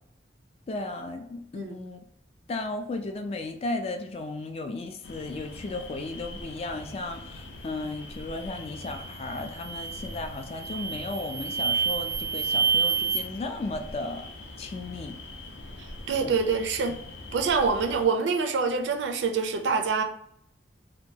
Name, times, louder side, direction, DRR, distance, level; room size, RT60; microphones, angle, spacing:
voice 1, 0.7-2.0 2.5-14.3 14.6-15.2 16.2-16.4 16.9-17.0, left 2 dB, 35° left, 6 dB, 0.3 m, -35 dB
sound 1, 5.0-18.1, left 2 dB, 80° left, 0.6 m, -43 dB
sound 2, 8.8-9.1 9.6-10.1 10.6-13.2, right 6 dB, 15° left, 0.7 m, -28 dB
voice 2, 16.1-17.0 17.3-20.0, right 5 dB, 80° right, 5 dB, 0.4 m, -25 dB
2.8 x 2.2 x 2.7 m, 0.70 s
head